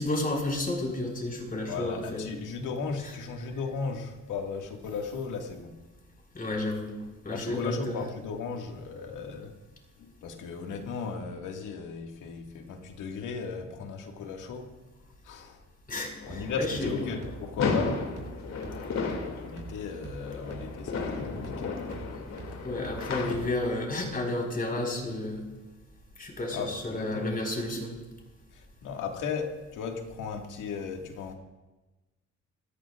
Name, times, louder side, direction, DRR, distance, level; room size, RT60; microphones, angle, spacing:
voice 1, 0.0-2.3 6.3-6.9 7.2-7.9 15.9-17.0 22.6-25.4 26.2-27.9, left 1 dB, 30° left, 1 dB, 5.0 m, -31 dB
voice 2, 1.7-5.8 7.3-9.5 10.0-14.7 15.2-15.6 16.3-18.0 19.2-21.9 26.5-27.4 28.5-31.3, left 5 dB, 85° left, 3 dB, 2.1 m, -36 dB
sound 1, 16.2-23.4, left 4 dB, 60° left, 2.6 m, -34 dB
sound 2, 16.3-23.8, right 3 dB, 55° right, 5.2 m, -45 dB
26.5 x 14.5 x 2.5 m, 1.1 s
cardioid pair, 90°, 30 cm